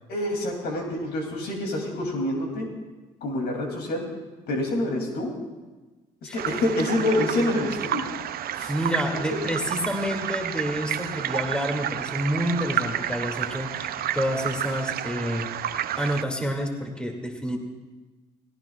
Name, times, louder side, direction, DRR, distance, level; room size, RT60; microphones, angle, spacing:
voice 1, 0.1-2.7 3.2-4.0 4.5-5.3 6.3-8.0 8.6-8.7, left 1 dB, 70° left, 1 dB, 2.9 m, -26 dB
sound 1, 6.4-16.2, right 11 dB, 60° right, 0.6 m, -30 dB
voice 2, 8.7-15.5 16.0-17.6, equal, 5° left, 2 dB, 2.4 m, -28 dB
18.0 x 17.0 x 2.4 m, 1.2 s
hypercardioid pair, 55°, 17 cm